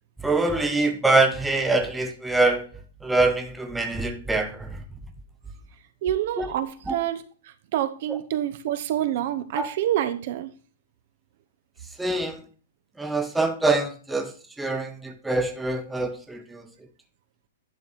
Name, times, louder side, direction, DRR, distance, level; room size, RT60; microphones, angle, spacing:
voice 1, 0.2-2.7 3.0-4.7 6.4-6.5 6.9-7.0 9.6-9.7 12.0-12.4 13.0-14.3 14.6-16.7, right 2 dB, 5° right, 4 dB, 0.7 m, -24 dB
voice 2, 6.0-10.5, right 11 dB, 45° right, 10 dB, 0.8 m, -27 dB
10.5 x 4.7 x 4.0 m, 0.38 s
hypercardioid pair, 165°, 0 cm